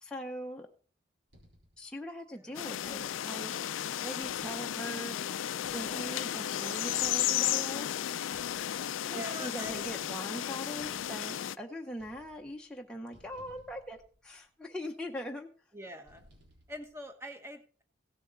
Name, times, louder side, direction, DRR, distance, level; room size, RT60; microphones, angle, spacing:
voice 1, 0.0-0.7 1.8-5.2 5.6-8.1 9.0-15.5, equal, 5° left, 0 dB, 0.7 m, -41 dB
sound 1, 1.3-1.9 2.8-3.4 4.2-5.0 5.6-6.4 7.0-7.6 8.3-9.1 9.6-10.3 10.8-11.6 11.9-12.8 13.1-14.6 16.1-17.0, equal, 75° right, 3.6 m, -62 dB
sound 2, 2.5-11.5, left 11 dB, 90° left, 0.4 m, -34 dB
voice 2, 9.0-9.7 15.7-16.2 16.7-17.8, left 1 dB, 15° right, 6 dB, 1.2 m, -44 dB
16.0 x 7.0 x 4.0 m, 0.41 s
head